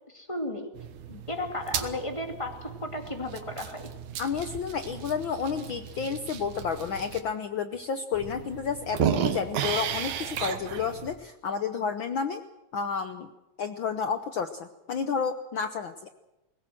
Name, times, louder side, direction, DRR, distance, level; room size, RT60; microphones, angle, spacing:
voice 1, 0.1-0.7 1.3-3.9, left 1 dB, 10° left, 4 dB, 2.1 m, -34 dB
sound 1, 0.8-7.2 7.7-7.8 8.1-11.2, right 8 dB, 90° right, 2.7 m, -34 dB
voice 2, 4.2-12.4 12.7-13.3 13.6-16.1, left 6 dB, 75° left, 9 dB, 1.1 m, -31 dB
21.0 x 18.5 x 7.7 m, 0.98 s
omnidirectional pair, 3.3 m